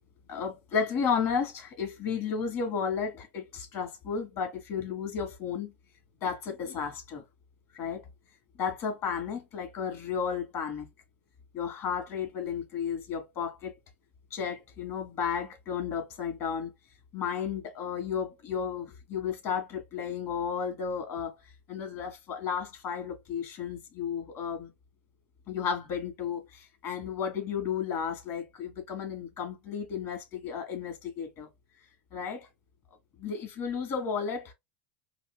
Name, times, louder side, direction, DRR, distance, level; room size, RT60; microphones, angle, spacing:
voice 1, 0.3-5.7 6.2-7.2 7.7-8.1 8.6-10.9 11.5-13.7 14.3-16.7 17.1-21.4 21.7-24.7 25.5-31.5 32.1-32.5 33.2-34.5, left 6 dB, 50° left, 2.3 m, -33 dB
4.1 x 3.1 x 2.2 m
hypercardioid pair, 95°, 6 cm